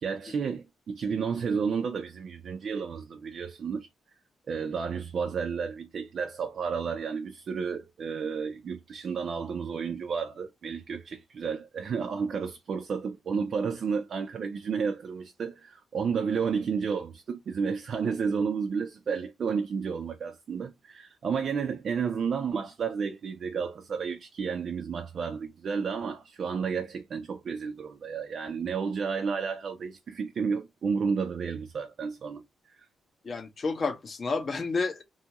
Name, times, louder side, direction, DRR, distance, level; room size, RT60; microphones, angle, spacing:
voice 1, 0.0-3.9 4.5-32.9, right 6 dB, 45° right, 0.3 m, -31 dB
voice 2, 33.3-35.0, left 4 dB, 30° left, 0.6 m, -30 dB
2.7 x 2.3 x 2.8 m
wide cardioid pair, 170°, 0 cm